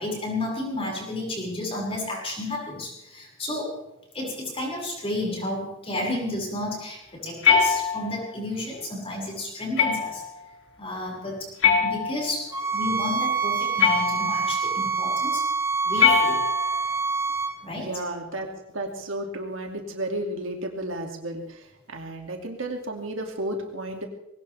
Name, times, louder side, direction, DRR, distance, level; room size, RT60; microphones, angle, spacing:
voice 1, 0.0-3.8 4.1-10.2 10.8-11.5 11.8-15.5 15.8-16.5 17.6-17.9, left 1 dB, 30° left, -2 dB, 5.9 m, -32 dB
sound 1, 7.4-8.3 9.8-10.3 11.6-12.5 13.8-14.5 16.0-16.9, left 6 dB, 75° left, 3.0 m, -22 dB
sound 2, 12.5-17.5, right 5 dB, 15° right, 2.0 m, -26 dB
voice 2, 17.8-18.5 18.7-24.1, right 1 dB, 75° right, 2 dB, 2.6 m, -33 dB
21.0 x 18.5 x 3.5 m, 0.87 s
head